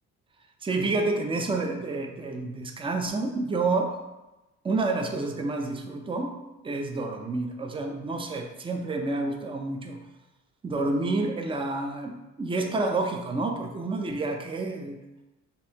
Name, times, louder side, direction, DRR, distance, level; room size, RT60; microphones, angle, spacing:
voice 1, 0.6-4.0 4.6-6.3 6.6-10.0 10.6-15.0, right 3 dB, 15° right, 3 dB, 0.5 m, -29 dB
5.3 x 2.6 x 2.8 m, 1.0 s
cardioid pair, 90°, 30 cm